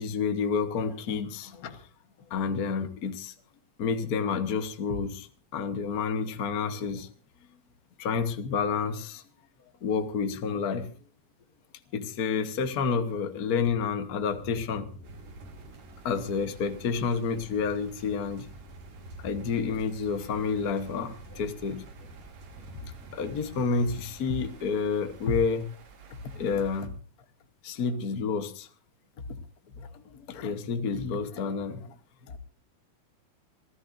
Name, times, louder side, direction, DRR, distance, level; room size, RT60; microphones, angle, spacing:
voice 1, 0.0-1.9 2.3-3.3 3.8-5.3 5.5-7.1 8.0-9.2 9.8-10.9 11.9-14.9 16.0-18.5 19.2-21.8 23.1-25.7 26.3-26.9 27.6-28.7 29.8-32.0 32.3-32.4, left 5 dB, 65° left, 8 dB, 0.9 m, -29 dB
sound 1, 14.3-24.2, equal, 85° right, 7.0 m, -48 dB
sound 2, 15.0-26.9, right 6 dB, 50° right, 2.3 m, -52 dB
26.5 x 16.0 x 2.6 m, 0.40 s
omnidirectional pair, 3.3 m